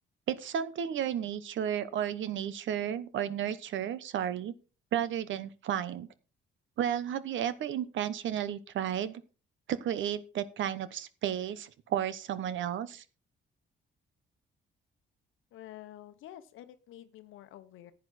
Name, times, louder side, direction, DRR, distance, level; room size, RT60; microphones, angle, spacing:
voice 1, 0.3-4.5 4.9-6.1 6.8-9.2 9.7-13.0, right 10 dB, 70° right, 15 dB, 1.0 m, -33 dB
voice 2, 15.5-17.9, left 12 dB, 85° left, 10 dB, 0.9 m, -49 dB
10.5 x 8.7 x 4.2 m, 0.35 s
cardioid pair, 90°, 20 cm